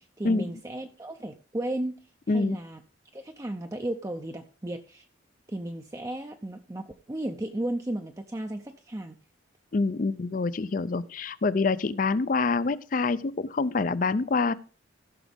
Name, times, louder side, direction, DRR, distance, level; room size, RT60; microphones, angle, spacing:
voice 1, 0.0-1.9 2.3-2.8 3.1-5.1 5.5-9.1, right 1 dB, 15° right, 4 dB, 0.5 m, -34 dB
voice 2, 9.7-14.5, left 3 dB, 45° left, 17 dB, 0.4 m, -26 dB
15.0 x 6.1 x 3.5 m, 0.38 s
head